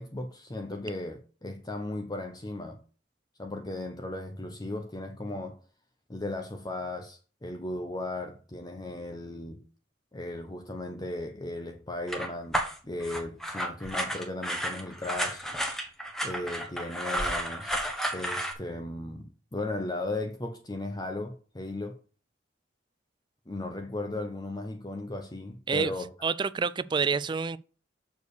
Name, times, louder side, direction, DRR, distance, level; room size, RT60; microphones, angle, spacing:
voice 1, 0.0-2.8 3.4-5.6 6.1-9.6 10.1-15.5 16.2-17.8 18.1-22.0 23.5-26.3, left 2 dB, 20° left, 0.7 m, -36 dB
sound 1, 12.1-18.5, equal, ahead, 1.1 m, -32 dB
voice 2, 26.2-27.6, right 5 dB, 25° right, 0.3 m, -27 dB
6.7 x 4.8 x 6.6 m
head